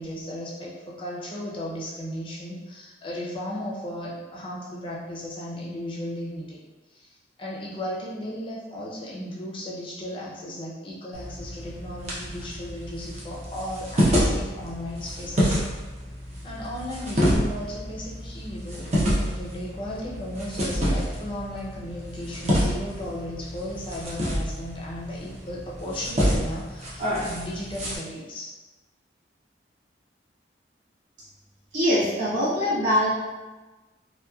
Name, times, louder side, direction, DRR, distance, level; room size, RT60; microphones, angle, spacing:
voice 1, 0.0-6.6 6.9-15.6 16.4-28.5, left 1 dB, 30° left, -5 dB, 0.5 m, -35 dB
sound 1, 11.1-28.0, equal, 35° right, 0.7 m, -28 dB
voice 2, 31.7-33.1, equal, 80° right, -12 dB, 1.2 m, -22 dB
2.9 x 2.6 x 2.3 m, 1.2 s
head